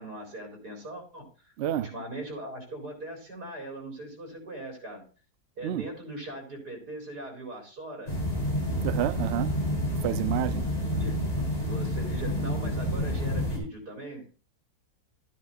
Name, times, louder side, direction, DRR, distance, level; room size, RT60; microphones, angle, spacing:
voice 1, 0.0-1.5 1.8-5.0 5.6-8.1 10.8-11.2 11.7-14.3, right 1 dB, 80° right, 4.7 m, -40 dB
voice 2, 1.6-1.9 5.6-5.9 8.8-9.6 10.0-10.7, right 12 dB, 60° right, 0.7 m, -29 dB
sound 1, 8.1-13.6, equal, 25° left, 3.7 m, -29 dB
13.0 x 9.5 x 2.5 m
omnidirectional pair, 1.7 m